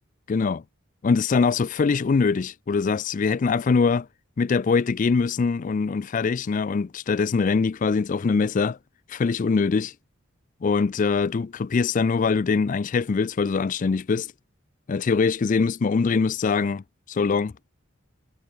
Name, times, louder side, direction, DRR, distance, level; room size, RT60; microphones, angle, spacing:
voice 1, 0.3-0.6 1.0-4.1 4.4-8.8 9.1-9.9 10.6-14.3 14.9-17.5, left 5 dB, 40° left, 0.3 m, -23 dB
head